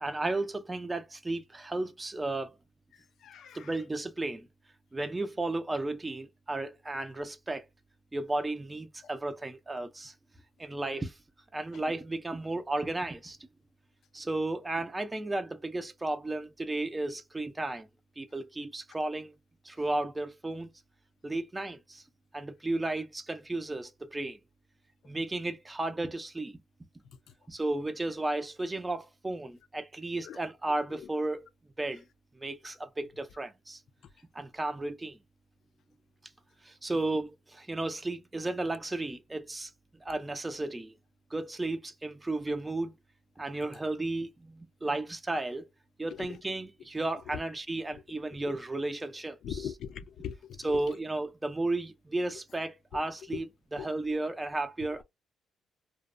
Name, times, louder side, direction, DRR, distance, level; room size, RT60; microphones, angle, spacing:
voice 1, 0.0-2.6 3.5-4.5 4.9-7.7 8.1-10.1 10.6-11.2 11.5-13.4 14.1-17.9 18.2-19.4 19.6-20.7 21.2-22.0 22.3-24.4 25.0-26.6 27.5-31.5 31.8-32.0 32.4-33.8 34.3-35.2 36.6-39.7 40.0-40.9 41.3-42.9 43.4-45.7 46.0-49.7 50.6-55.0, right 2 dB, 15° right, 0.4 m, -34 dB
voice 2, 3.2-3.6 30.2-30.4 46.2-46.4 49.4-50.6, left 8 dB, 70° left, 0.3 m, -39 dB
2.5 x 2.0 x 2.4 m
cardioid pair, 90°, 0 cm